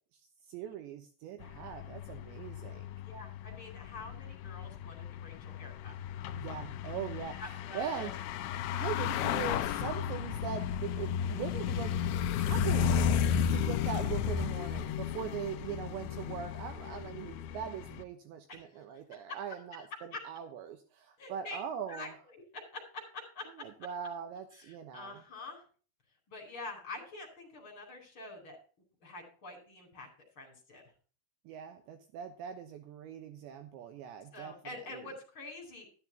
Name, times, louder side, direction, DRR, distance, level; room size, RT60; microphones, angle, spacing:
voice 1, 0.5-2.9 6.3-7.4 7.7-8.1 8.7-11.9 12.4-22.1 23.6-25.2 31.5-35.1, right 8 dB, 75° right, 7 dB, 3.2 m, -41 dB
sound 1, 1.4-18.0, left 8 dB, 90° left, 2.2 m, -34 dB
voice 2, 3.0-5.9 7.4-8.1 18.5-18.7 19.1-19.4 20.1-20.2 21.2-21.6 21.9-22.1 22.5-23.5 24.6-25.6 26.3-28.6 29.0-30.1 30.4-30.8 34.3-35.9, left 2 dB, 25° left, 2 dB, 4.7 m, -46 dB
12.5 x 12.0 x 2.9 m, 0.38 s
omnidirectional pair, 5.5 m